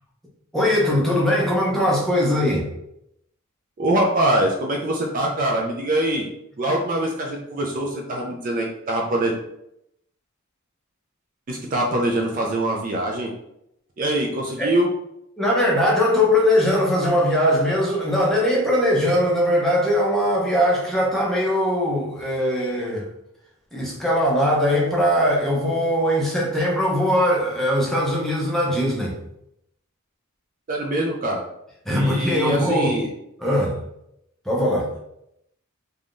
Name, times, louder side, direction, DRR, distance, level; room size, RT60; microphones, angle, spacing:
voice 1, 0.5-2.7 14.6-14.7 15.4-23.1 23.7-29.1 31.9-32.9 33.4-33.8 34.5-34.9, equal, ahead, -4 dB, 0.6 m, -20 dB
voice 2, 3.8-6.3 6.6-9.3 11.5-13.3 14.0-14.9 30.7-31.4 31.9-33.1, right 1 dB, 40° right, 0 dB, 0.4 m, -23 dB
3.3 x 2.2 x 2.5 m, 0.79 s
head